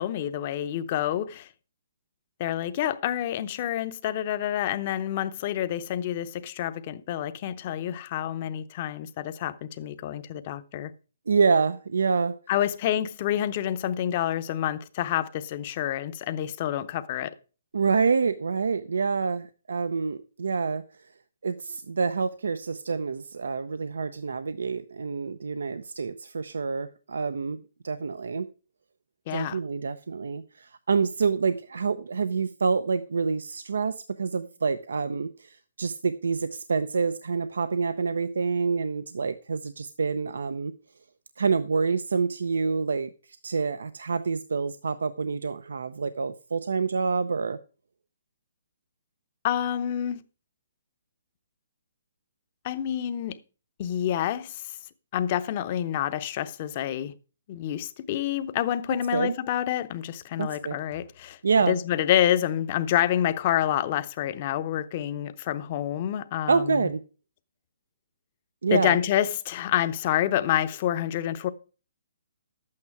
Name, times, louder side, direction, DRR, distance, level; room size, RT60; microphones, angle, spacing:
voice 1, 0.0-1.5 2.4-10.9 12.5-17.3 29.3-29.6 49.4-50.2 52.6-53.4 53.8-54.8 55.1-57.1 57.5-61.4 61.7-66.9 68.7-71.5, left 11 dB, 30° left, 0.8 m, -28 dB
voice 2, 11.3-12.4 17.7-21.1 21.4-27.6 27.8-28.5 29.3-40.7 41.4-47.6 58.9-59.4 60.4-60.8 61.4-61.8 66.5-67.0 68.6-69.0, right 5 dB, 90° right, 0.7 m, -27 dB
12.0 x 8.6 x 4.7 m
hypercardioid pair, 170°, 0 cm